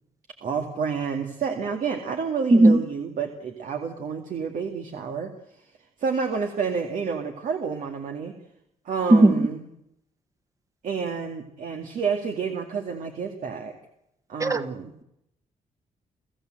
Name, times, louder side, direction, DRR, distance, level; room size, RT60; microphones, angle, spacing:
voice 1, 0.4-5.7 6.0-8.4 8.8-9.6 10.8-13.7 14.3-14.9, right 6 dB, 70° right, 4 dB, 2.2 m, -29 dB
voice 2, 2.5-2.8 9.1-9.4 14.4-14.6, right 2 dB, 25° right, 9 dB, 1.5 m, -15 dB
29.5 x 15.5 x 7.8 m, 0.81 s
cardioid pair, 130°, 14 cm